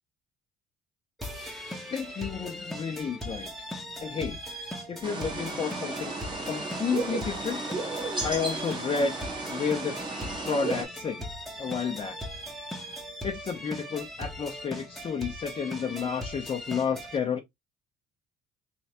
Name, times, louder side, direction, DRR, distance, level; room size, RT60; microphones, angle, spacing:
sound 1, 1.2-17.2, equal, ahead, 1.0 m, -39 dB
voice 1, 1.9-3.5 4.0-4.4 4.9-6.1 6.5-7.6 8.2-9.2 9.4-10.0 10.4-11.3 11.6-12.2 13.2-17.4, left 6 dB, 35° left, 0.8 m, -31 dB
sound 2, 5.0-10.9, right 3 dB, 25° right, 1.2 m, -34 dB
3.3 x 3.1 x 2.9 m
cardioid pair, 110°, 17 cm